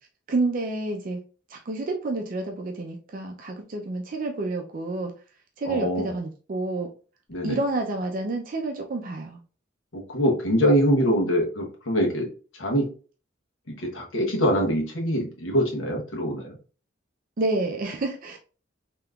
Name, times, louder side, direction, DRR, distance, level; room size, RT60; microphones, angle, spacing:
voice 1, 0.3-1.2 1.5-5.1 5.6-6.9 7.4-9.4 17.4-18.4, right 2 dB, 45° right, 2 dB, 0.4 m, -29 dB
voice 2, 5.6-6.1 7.3-7.6 9.9-12.3 12.6-12.9 13.7-16.6, equal, 80° left, 0 dB, 1.0 m, -24 dB
3.5 x 2.8 x 2.3 m, 0.37 s
head